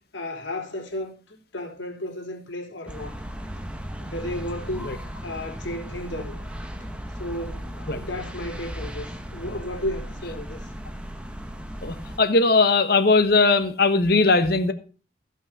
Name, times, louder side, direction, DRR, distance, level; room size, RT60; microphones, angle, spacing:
voice 1, 0.1-3.2 4.0-6.4 7.2-10.7, left 1 dB, 80° left, 3.5 m, -34 dB
sound 1, 2.9-12.2, equal, 5° right, 1.0 m, -36 dB
voice 2, 11.8-14.7, left 3 dB, 55° left, 1.3 m, -19 dB
15.0 x 5.6 x 5.8 m
head